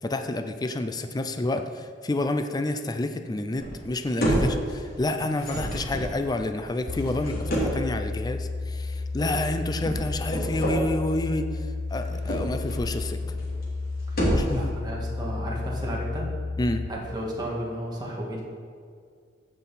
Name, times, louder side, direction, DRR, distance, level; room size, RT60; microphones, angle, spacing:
voice 1, 0.0-13.2 14.3-14.7 16.6-16.8, left 2 dB, 20° left, 7 dB, 0.4 m, -29 dB
sound 1, 3.6-3.9 4.2-4.9 5.3-7.9 9.2-9.4 9.7-10.8 12.0-12.9 13.2-13.7 14.0-14.7, right 1 dB, 55° left, 2.9 m, -29 dB
sound 2, 6.9-16.9, left 3 dB, 85° left, 0.7 m, -32 dB
voice 2, 14.5-16.3 16.9-18.4, equal, 25° right, -3 dB, 1.9 m, -33 dB
15.0 x 5.9 x 4.2 m, 2.1 s
head